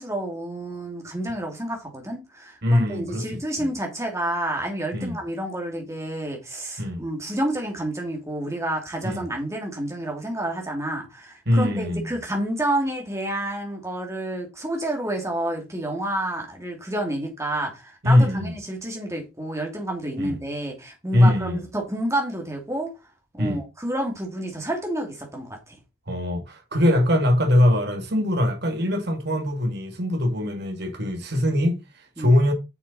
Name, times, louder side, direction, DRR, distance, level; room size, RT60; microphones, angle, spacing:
voice 1, 0.0-22.9 23.3-25.7 32.2-32.3, right 1 dB, 15° right, 2.8 m, -29 dB
voice 2, 2.6-3.3 3.6-3.7 4.9-5.2 6.8-7.0 9.0-9.3 11.5-12.2 18.0-18.5 20.2-20.4 21.1-21.6 23.4-23.6 26.1-32.5, left 1 dB, 50° right, 2.4 m, -22 dB
8.3 x 6.5 x 4.3 m
head